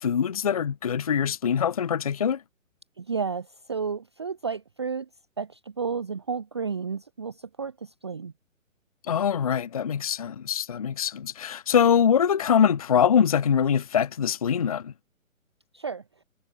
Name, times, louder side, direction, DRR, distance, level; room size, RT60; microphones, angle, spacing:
voice 1, 0.0-2.4 9.1-14.9, left 8 dB, 25° left, 0.6 m, -23 dB
voice 2, 3.0-5.1 5.4-8.3 15.7-16.0, right 5 dB, 20° right, 0.5 m, -32 dB
figure-of-eight pair, 135°, 41 cm